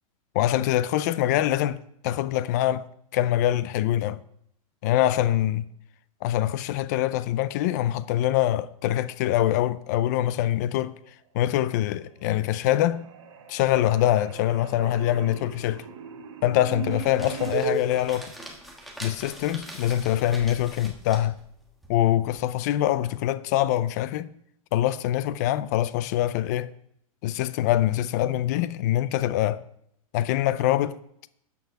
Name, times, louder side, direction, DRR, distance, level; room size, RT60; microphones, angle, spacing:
voice 1, 0.3-1.8 2.0-2.9 3.1-4.2 4.8-5.6 6.2-10.9 11.3-13.0 13.5-15.8 16.4-18.3 19.0-21.4 21.9-24.3 24.7-26.7 27.2-29.6 30.1-31.0, left 13 dB, 30° left, 0.4 m, -24 dB
sound 1, 11.8-12.4 12.6-17.8, right 5 dB, 50° right, 1.7 m, -36 dB
sound 2, 16.7-22.4, equal, ahead, 1.3 m, -44 dB
13.0 x 8.4 x 4.7 m
supercardioid pair, 165°, 18 cm